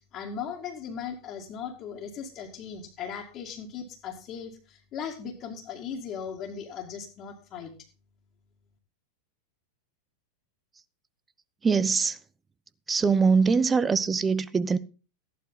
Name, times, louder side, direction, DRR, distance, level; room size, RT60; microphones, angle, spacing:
voice 1, 0.1-7.7, left 7 dB, 35° left, 2.4 m, -38 dB
voice 2, 11.6-12.2 12.9-14.8, right 5 dB, 15° right, 0.8 m, -23 dB
14.5 x 11.0 x 4.1 m
figure-of-eight pair, 90°, 0 cm